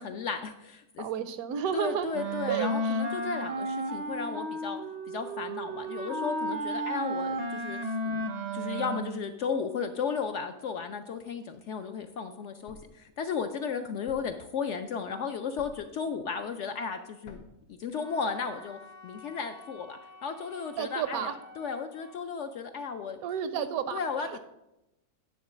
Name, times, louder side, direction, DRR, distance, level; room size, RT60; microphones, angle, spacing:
voice 1, 0.0-1.1 1.7-4.8 5.1-8.2 8.5-17.4 17.7-23.2 23.6-23.7 23.9-24.4, left 6 dB, 70° left, 7 dB, 0.7 m, -35 dB
voice 2, 1.0-2.2 2.5-3.0 20.8-21.3 23.2-24.0 24.2-24.4, right 8 dB, 75° right, 12 dB, 1.0 m, -31 dB
Wind instrument woodwind instrument, 2.1-9.3, right 1 dB, 45° right, 0.5 m, -33 dB
Thump thud, 12.7-13.1 14.1-14.5 15.6-16.0 17.3-17.7, left 3 dB, 90° left, 1.3 m, -50 dB
Wind instrument woodwind instrument 2, 18.0-22.2, left 2 dB, 25° left, 0.4 m, -51 dB
9.5 x 3.8 x 6.1 m, 0.91 s
omnidirectional pair, 1.6 m